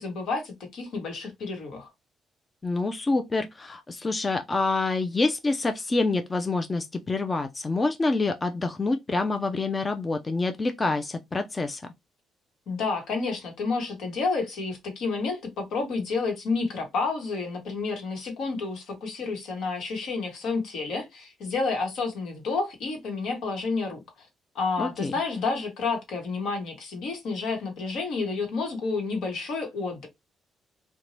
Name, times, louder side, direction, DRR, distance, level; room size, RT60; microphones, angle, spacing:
voice 1, 0.0-1.9 12.7-24.3 24.5-30.1, left 4 dB, 75° left, 1.1 m, -30 dB
voice 2, 2.6-11.8 24.8-25.1, left 3 dB, 25° left, 0.4 m, -27 dB
2.7 x 2.2 x 3.0 m
cardioid pair, 90°, 0 cm